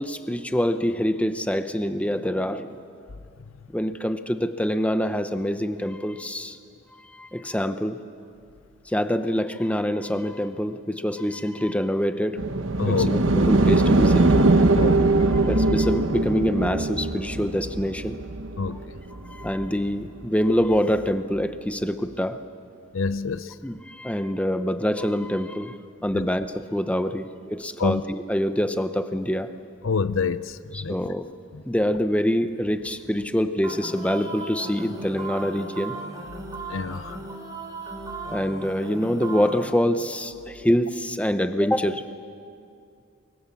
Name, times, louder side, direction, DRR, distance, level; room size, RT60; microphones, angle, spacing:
voice 1, 0.0-2.8 3.7-6.6 6.9-8.0 8.9-12.4 12.9-14.6 15.3-18.2 19.3-22.4 23.6-29.5 30.7-31.3 31.7-36.0 38.3-42.1, equal, 5° left, 9 dB, 0.8 m, -25 dB
sound 1, 12.4-19.7 20.7-20.8, right 2 dB, 70° right, 1.2 m, -21 dB
voice 2, 12.8-13.1 14.8-15.1 18.6-18.8 22.9-23.5 26.1-26.3 27.8-28.0 29.8-31.0 31.5-31.6 36.7-37.2, left 5 dB, 75° left, 14 dB, 0.7 m, -26 dB
sound 2, 33.6-39.7, right 3 dB, 20° right, 3.8 m, -37 dB
28.5 x 23.5 x 7.4 m, 2.4 s
head